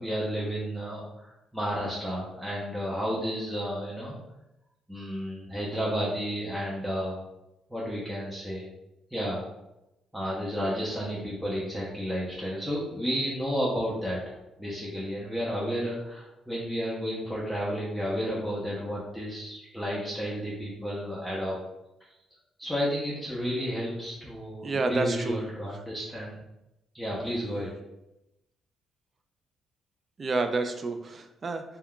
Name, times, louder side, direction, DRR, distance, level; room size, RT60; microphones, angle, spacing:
voice 1, 0.0-4.2 4.9-7.2 7.7-8.7 9.1-9.4 10.1-21.6 22.6-26.4 26.9-27.7, equal, ahead, -7 dB, 0.6 m, -32 dB
voice 2, 24.6-25.4 30.2-31.6, right 3 dB, 40° right, 7 dB, 0.3 m, -29 dB
2.3 x 2.2 x 3.6 m, 0.92 s
cardioid pair, 90°, 0 cm